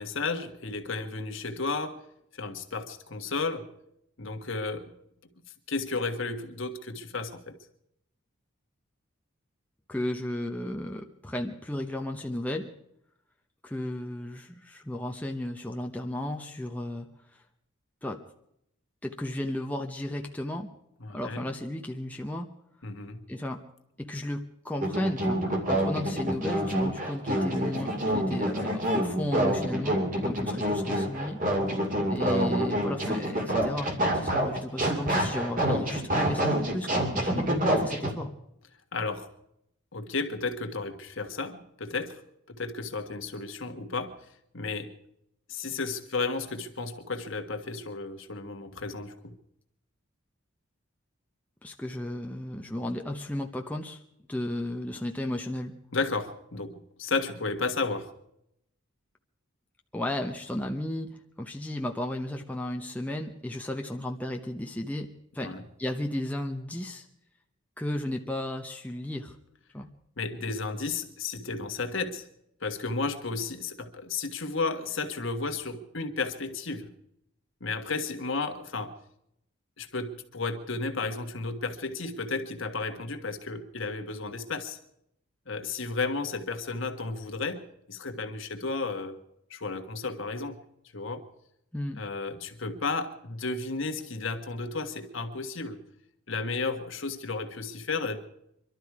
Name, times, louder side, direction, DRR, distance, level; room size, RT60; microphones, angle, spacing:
voice 1, 0.0-2.0 2.4-3.7 4.2-4.9 5.7-7.6 21.0-21.5 22.8-23.2 37.3-37.4 38.9-39.3 39.9-42.2 42.5-44.2 44.5-44.9 45.5-49.3 55.9-58.1 65.4-65.6 70.2-72.2 72.6-76.9 77.6-78.9 79.8-84.8 85.5-89.2 89.5-90.6 90.9-91.3 92.0-95.8 96.3-98.2, left 3 dB, 60° left, 6 dB, 1.5 m, -33 dB
voice 2, 9.9-12.7 13.6-17.4 18.0-18.2 19.0-20.7 21.1-22.5 23.3-23.6 24.0-31.4 32.1-38.3 51.6-54.0 54.3-55.7 59.9-65.5 65.8-67.1 67.8-69.3 69.7-69.9 91.7-92.0, left 1 dB, 5° left, 2 dB, 0.8 m, -34 dB
sound 1, 24.8-38.1, right 1 dB, 40° right, 2.4 m, -27 dB
24.5 x 12.5 x 4.8 m, 0.77 s
head